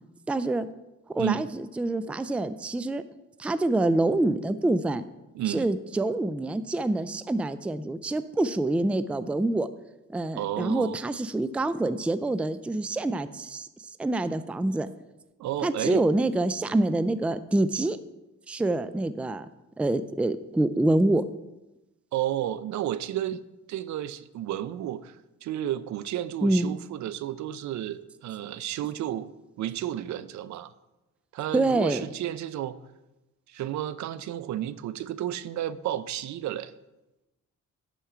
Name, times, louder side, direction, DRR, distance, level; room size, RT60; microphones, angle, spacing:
voice 1, 0.3-0.7 1.1-3.0 3.4-5.0 5.5-9.7 10.1-13.7 14.0-14.9 15.6-18.0 18.5-19.5 19.8-21.2 26.4-26.8 31.5-32.1, right 2 dB, 5° right, 13 dB, 0.3 m, -26 dB
voice 2, 1.2-1.5 5.3-5.7 10.4-11.0 15.4-16.0 22.1-23.4 23.7-29.3 29.6-30.7 31.3-32.8 33.5-36.7, right 12 dB, 70° right, 15 dB, 0.5 m, -32 dB
10.0 x 4.6 x 5.7 m, 0.98 s
cardioid pair, 90°, 30 cm